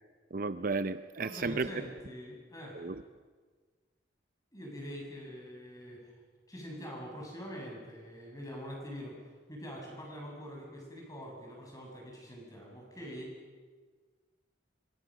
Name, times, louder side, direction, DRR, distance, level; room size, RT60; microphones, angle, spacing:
voice 1, 0.3-1.7 2.8-3.0, right 4 dB, 50° right, 12 dB, 0.6 m, -33 dB
voice 2, 1.2-2.9 4.5-6.2 6.5-9.2 9.5-13.4, equal, 20° left, -1 dB, 7.8 m, -44 dB
25.5 x 25.0 x 6.6 m, 1.5 s
head